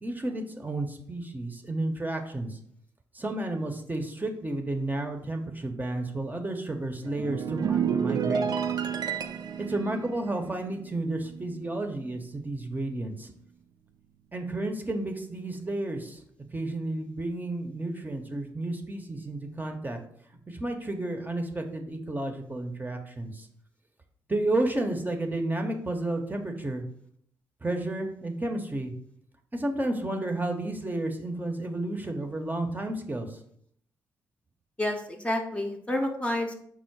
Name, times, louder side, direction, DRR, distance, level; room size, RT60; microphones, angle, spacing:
voice 1, 0.0-2.6 3.1-8.5 9.7-13.3 14.3-16.2 16.5-20.0 20.5-23.5 24.3-26.8 27.6-28.9 29.5-33.4, right 2 dB, 20° right, 4 dB, 0.7 m, -32 dB
sound 1, 7.0-11.7 11.9-12.3, right 7 dB, 60° right, 0.4 m, -31 dB
voice 2, 34.8-36.5, left 1 dB, 15° left, 2 dB, 0.6 m, -29 dB
4.3 x 2.0 x 4.5 m, 0.65 s
supercardioid pair, 55°, 8 cm